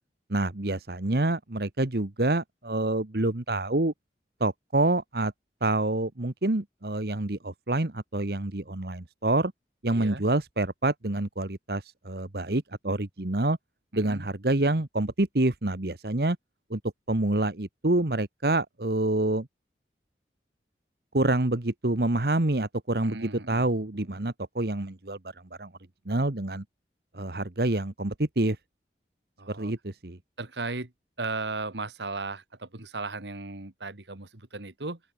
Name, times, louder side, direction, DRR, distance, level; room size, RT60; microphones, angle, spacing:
voice 1, 0.3-3.9 4.4-5.3 5.6-9.5 9.8-13.6 13.9-16.4 16.7-16.8 17.1-19.5 21.1-25.2 25.6-25.7 26.0-26.6 27.1-28.6 29.5-30.2, right 2 dB, 60° right, 1.4 m, -27 dB
voice 2, 9.9-10.2 13.9-14.3 23.0-23.6 29.4-29.7 30.4-30.9 31.2-35.0, right 3 dB, 80° right, 2.1 m, -36 dB
open air
head